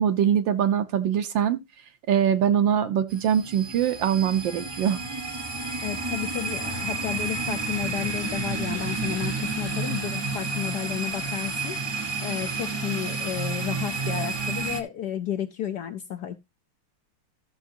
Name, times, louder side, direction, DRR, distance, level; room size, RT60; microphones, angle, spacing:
voice 1, 0.0-1.6 2.1-5.0, right 9 dB, 70° right, 1.5 m, -23 dB
sound 1, 3.1-14.8, right 4 dB, 25° right, 0.6 m, -30 dB
voice 2, 5.8-11.8 12.2-16.4, left 10 dB, 70° left, 1.0 m, -32 dB
13.5 x 6.9 x 2.7 m
omnidirectional pair, 2.3 m